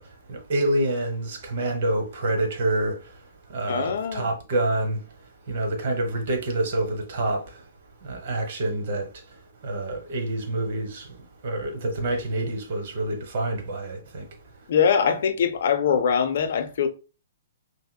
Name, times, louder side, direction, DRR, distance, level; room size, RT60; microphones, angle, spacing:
voice 1, 0.3-2.9 3.5-5.0 5.5-7.4 8.0-9.1 9.6-11.0 11.4-14.2, right 1 dB, 55° right, 1.1 m, -27 dB
voice 2, 3.7-4.3 14.7-16.9, left 7 dB, 60° left, 0.5 m, -22 dB
5.5 x 2.1 x 2.3 m
hypercardioid pair, 125°, 0 cm